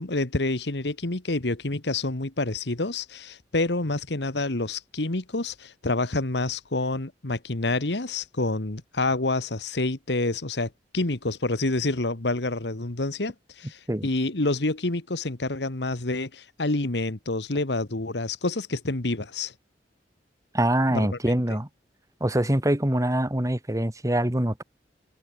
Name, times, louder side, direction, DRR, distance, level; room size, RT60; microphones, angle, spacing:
voice 1, 0.0-19.5 20.9-21.2, left 2 dB, 70° left, 1.7 m, -28 dB
voice 2, 20.5-21.7 22.2-24.6, right 1 dB, 20° right, 1.9 m, -24 dB
head